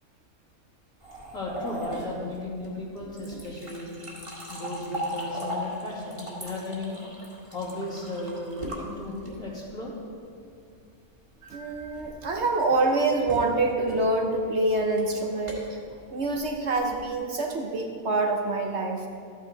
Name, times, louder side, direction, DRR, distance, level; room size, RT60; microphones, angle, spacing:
sound 1, 1.0-9.6 11.4-17.1, equal, 20° right, 1.9 m, -38 dB
voice 1, 1.3-3.9 4.5-7.0 7.5-9.9, left 2 dB, 65° left, -7 dB, 3.1 m, -35 dB
voice 2, 11.5-15.6 16.1-19.0, right 2 dB, 55° right, 2 dB, 1.0 m, -26 dB
13.5 x 9.0 x 4.0 m, 2.4 s
omnidirectional pair, 1.6 m